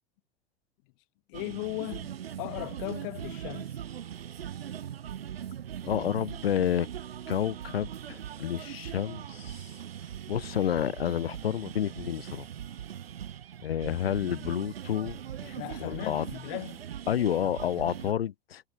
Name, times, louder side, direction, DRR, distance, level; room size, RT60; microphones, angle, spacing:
voice 1, 1.3-2.1 2.4-3.7 15.4-16.9, left 28 dB, 55° left, 8.0 m, -37 dB
sound 1, 1.3-18.1, right 9 dB, 75° right, 4.1 m, -40 dB
voice 2, 5.8-6.9 7.3-9.7 10.3-12.5 13.6-15.2 15.8-16.3 17.1-18.6, left 10 dB, 75° left, 2.8 m, -30 dB
hypercardioid pair, 90°, 30 cm